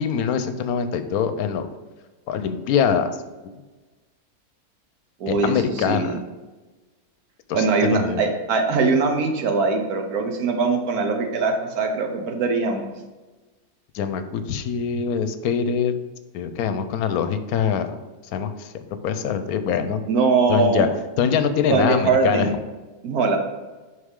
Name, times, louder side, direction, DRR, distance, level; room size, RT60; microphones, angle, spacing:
voice 1, 0.0-1.7 2.3-3.1 5.3-6.2 7.5-8.2 13.9-15.9 16.3-17.9 18.3-18.7 19.0-20.0 20.5-20.9 21.2-22.5, left 7 dB, 80° left, 10 dB, 1.1 m, -23 dB
voice 2, 5.2-6.2 7.5-12.9 20.1-20.9 21.7-22.5 23.0-23.4, right 4 dB, 85° right, 4 dB, 1.5 m, -21 dB
6.6 x 5.3 x 3.7 m, 1.2 s
omnidirectional pair, 1.5 m